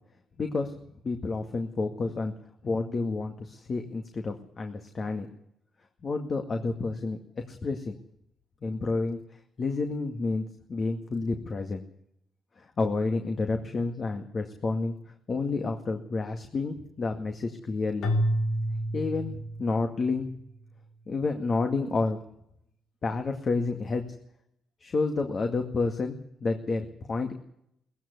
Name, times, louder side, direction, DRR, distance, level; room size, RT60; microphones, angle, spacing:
voice 1, 0.4-0.7 1.0-2.3 2.6-5.3 6.0-7.2 7.5-7.9 8.6-9.2 9.6-10.4 10.7-11.8 12.8-15.0 15.3-18.1 18.9-20.3 21.1-22.2 23.0-24.0 24.8-27.3, left 3 dB, 40° left, 5 dB, 2.1 m, -29 dB
Keyboard (musical), 18.0-20.3, equal, 80° left, 3.6 m, -29 dB
19.0 x 15.5 x 9.7 m, 0.74 s
cardioid pair, 90°, 0 cm